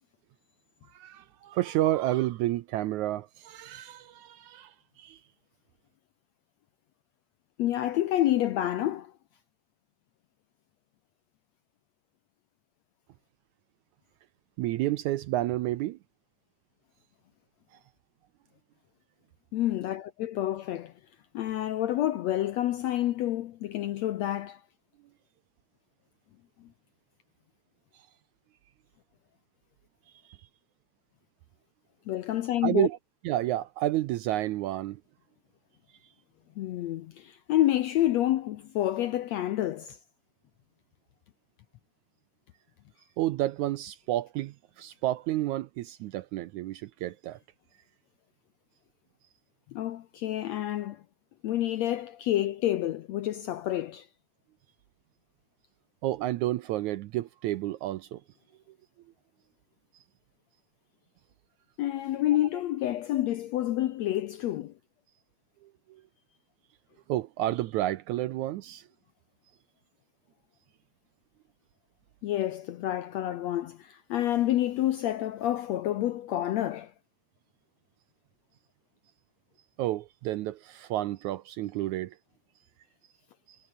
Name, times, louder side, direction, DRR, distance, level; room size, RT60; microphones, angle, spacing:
voice 1, 0.9-5.2 14.6-16.0 30.3-30.4 32.6-33.0 33.2-35.0 43.2-47.4 56.0-58.2 65.9-66.0 67.1-68.9 79.8-82.2 83.5-83.6, right 15 dB, 75° right, 1.8 m, -30 dB
voice 2, 7.6-9.1 19.5-20.9 21.3-24.6 32.1-32.9 36.6-40.0 49.7-51.0 51.4-54.1 61.8-64.7 72.2-76.9, left 13 dB, 75° left, 1.6 m, -28 dB
omnidirectional pair, 4.0 m